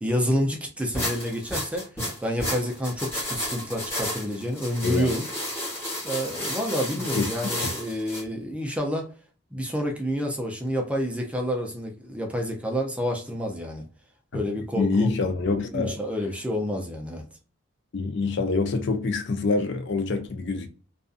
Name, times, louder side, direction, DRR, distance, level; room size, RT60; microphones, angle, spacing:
voice 1, 0.0-5.3 6.0-9.1 9.5-13.8 14.3-15.1 15.7-17.2, equal, 5° right, 0.4 m, -29 dB
sound 1, 0.9-8.2, left 1 dB, 10° left, 1.2 m, -32 dB
voice 2, 6.9-7.3 7.6-7.7 14.3-14.4 14.7-16.0 17.9-20.7, left 3 dB, 55° left, 0.4 m, -26 dB
2.5 x 2.3 x 2.4 m
head